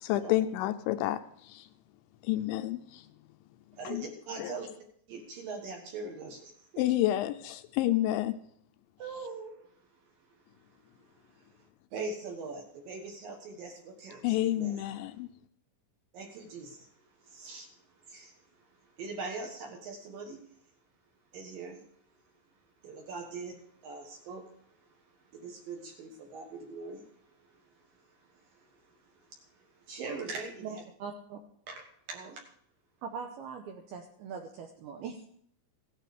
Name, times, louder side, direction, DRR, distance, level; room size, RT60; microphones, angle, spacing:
voice 1, 0.0-1.7 2.2-3.1 3.8-4.1 4.4-4.5 6.8-8.3 14.2-15.3, left 14 dB, 80° left, 9 dB, 2.8 m, -29 dB
voice 2, 3.8-4.7 5.1-6.8 9.0-9.6 11.0-11.6 11.9-14.7 16.1-16.9 17.2-17.7 18.0-18.4 19.0-20.4 21.3-21.8 22.8-24.5 25.3-27.6 28.0-30.8 31.7-31.8 32.1-32.4, right 4 dB, 65° right, 2 dB, 2.5 m, -42 dB
voice 3, 30.6-31.4 33.0-35.3, right 6 dB, 80° right, 3 dB, 2.3 m, -41 dB
16.5 x 9.3 x 5.0 m, 0.68 s
omnidirectional pair, 5.5 m